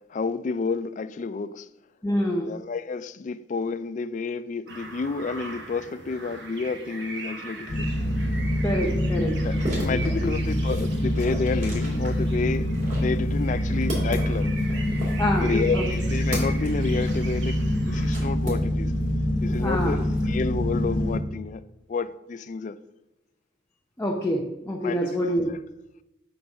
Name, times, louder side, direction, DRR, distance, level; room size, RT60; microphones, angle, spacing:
voice 1, 0.1-1.7 2.4-7.9 9.4-12.7 12.9-14.5 15.4-18.9 19.4-21.6 21.9-22.8 24.8-25.6, left 4 dB, 40° left, 0.3 m, -30 dB
voice 2, 2.0-2.5 8.6-9.3 10.2-10.3 15.2-15.8 19.6-20.0 24.0-25.5, equal, 15° left, 0.7 m, -26 dB
sound 1, 4.7-18.3, right 3 dB, 60° right, 1.0 m, -41 dB
sound 2, 7.7-21.2, equal, 85° left, 1.1 m, -25 dB
sound 3, 9.4-19.1 19.4-20.3, right 1 dB, 40° right, 2.6 m, -37 dB
7.9 x 3.9 x 5.8 m
head